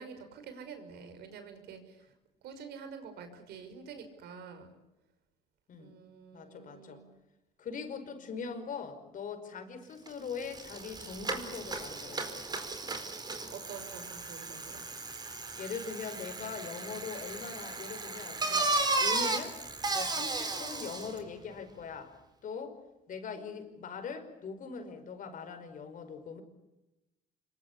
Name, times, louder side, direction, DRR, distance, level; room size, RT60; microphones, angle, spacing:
voice 1, 0.0-2.1 2.4-4.8 5.8-7.1 7.8-8.2 13.5-14.8, right 6 dB, 75° right, 8 dB, 5.9 m, -48 dB
voice 2, 6.3-7.0 7.6-12.4 15.6-18.7 19.0-19.6 19.9-22.1 22.4-22.8 23.1-26.4, left 5 dB, 50° left, 9 dB, 5.3 m, -41 dB
Bicycle, 10.1-10.2 10.4-21.2, right 3 dB, 25° right, 4.5 m, -35 dB
26.5 x 23.5 x 8.5 m, 0.97 s
cardioid pair, 110°, 17 cm